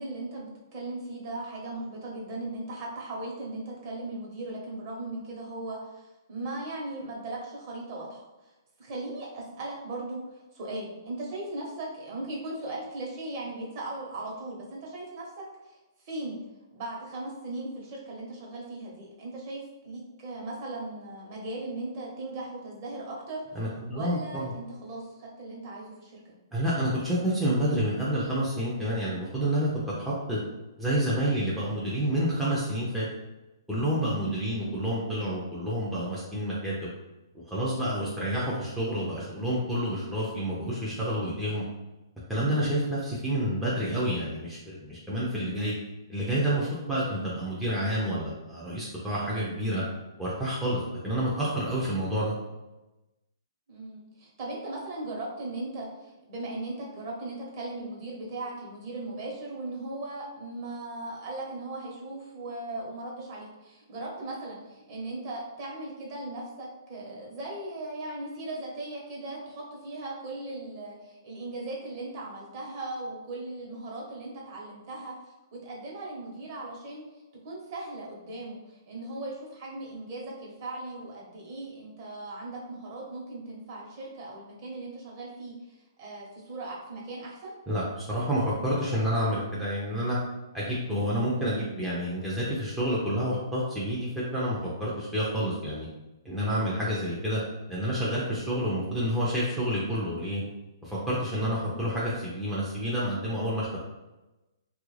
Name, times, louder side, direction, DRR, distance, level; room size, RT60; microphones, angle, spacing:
voice 1, 0.0-8.3 8.8-15.8 16.0-16.4 16.7-23.6 23.9-26.2 53.7-75.1 75.5-77.0 77.4-78.6 78.9-87.6, right 2 dB, 40° right, -3 dB, 1.0 m, -38 dB
voice 2, 23.5-24.5 26.5-29.7 30.0-30.4 30.8-33.1 33.7-36.9 37.5-41.6 42.3-45.7 46.1-49.8 50.2-52.3 87.7-90.2 90.5-95.9 96.2-97.4 97.7-100.4 100.8-103.8, equal, ahead, -9 dB, 0.5 m, -29 dB
3.1 x 2.4 x 3.2 m, 1.0 s
hypercardioid pair, 155°, 2 cm